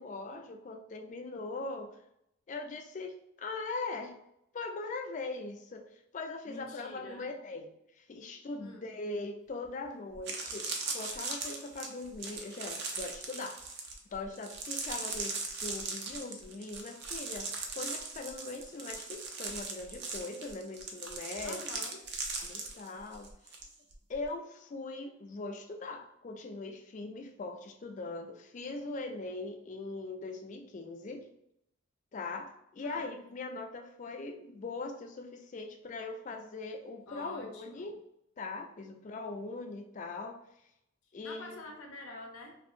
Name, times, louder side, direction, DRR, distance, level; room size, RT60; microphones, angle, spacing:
voice 1, 0.0-1.9 2.5-4.2 4.5-13.6 14.1-21.7 22.4-23.3 24.1-31.3 32.1-38.0 38.4-40.4 41.1-41.6, left 3 dB, 35° left, 4 dB, 0.3 m, -41 dB
voice 2, 6.5-7.3 8.6-8.9 21.4-22.0 32.8-33.1 37.1-38.0 41.2-42.6, left 2 dB, 85° left, 2 dB, 0.6 m, -47 dB
sound 1, 9.6-9.7 10.1-23.7 23.9-24.3, right 4 dB, 55° right, 0.4 m, -39 dB
2.8 x 2.6 x 2.4 m, 0.76 s
head